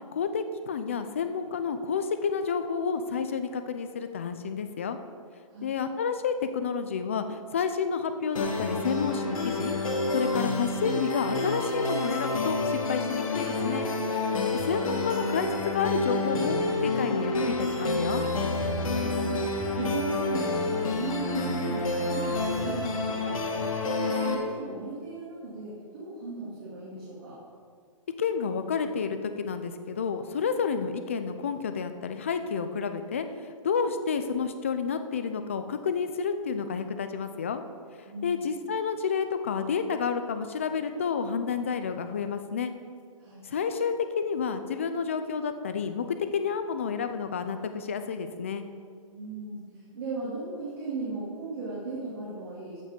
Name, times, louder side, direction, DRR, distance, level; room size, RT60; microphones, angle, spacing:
voice 1, 0.1-5.0 5.6-9.8 10.1-13.9 14.5-16.6 16.8-18.2 28.2-37.6 38.2-42.7 43.4-46.1 46.3-48.7, left 6 dB, 25° left, 9 dB, 0.4 m, -30 dB
sound 1, 8.4-24.4, left 2 dB, 75° left, 2.0 m, -29 dB
voice 2, 18.7-19.5 19.8-27.4 38.1-38.5 43.2-43.5 49.1-49.6 49.9-52.8, right 3 dB, 45° right, -8 dB, 2.6 m, -37 dB
14.5 x 5.2 x 5.2 m, 2.1 s
hypercardioid pair, 175°, 18 cm